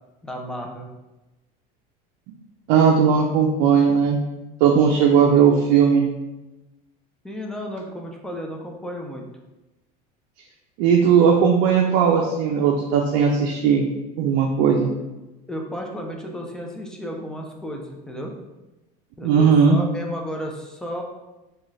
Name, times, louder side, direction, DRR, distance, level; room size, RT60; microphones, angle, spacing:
voice 1, 0.2-0.9 7.2-9.2 15.5-18.3 19.2-21.0, equal, 5° left, 0 dB, 0.4 m, -33 dB
voice 2, 2.7-4.2 4.6-6.1 10.8-13.8 14.2-14.9 19.2-19.8, right 6 dB, 70° right, 1 dB, 0.4 m, -17 dB
3.7 x 2.3 x 3.1 m, 1.0 s
supercardioid pair, 135°, 21 cm